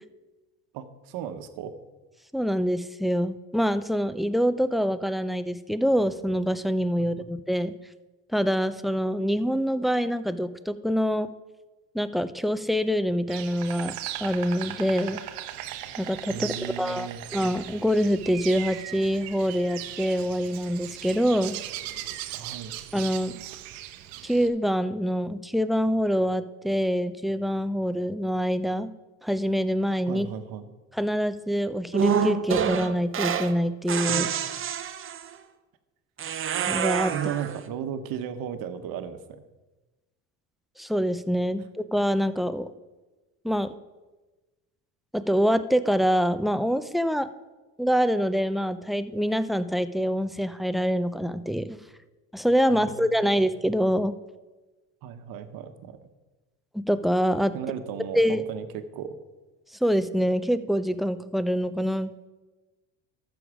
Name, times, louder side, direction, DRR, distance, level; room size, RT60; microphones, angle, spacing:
voice 1, 0.7-1.7 7.0-7.3 16.3-17.2 22.3-22.7 30.1-30.7 34.1-34.3 36.4-36.5 37.1-39.4 52.7-53.2 55.0-56.0 57.5-59.2, right 8 dB, 65° right, 9 dB, 1.2 m, -35 dB
voice 2, 2.3-7.8 8.3-11.3 11.9-13.9 14.2-15.2 16.0-21.6 22.9-23.3 24.2-28.9 29.2-30.3 30.9-34.3 36.7-37.1 40.8-41.6 41.9-42.7 43.4-43.7 45.1-47.3 47.8-51.8 52.3-54.1 56.7-57.5 58.1-58.4 59.8-62.3, equal, ahead, 13 dB, 0.4 m, -25 dB
Insect, 13.3-24.5, right 13 dB, 80° right, 0.9 m, -38 dB
sound 1, 31.9-33.6 33.9-35.3 36.2-37.6, right 8 dB, 35° right, 0.8 m, -27 dB
13.0 x 7.1 x 4.9 m, 1.2 s
supercardioid pair, 90°, 37 cm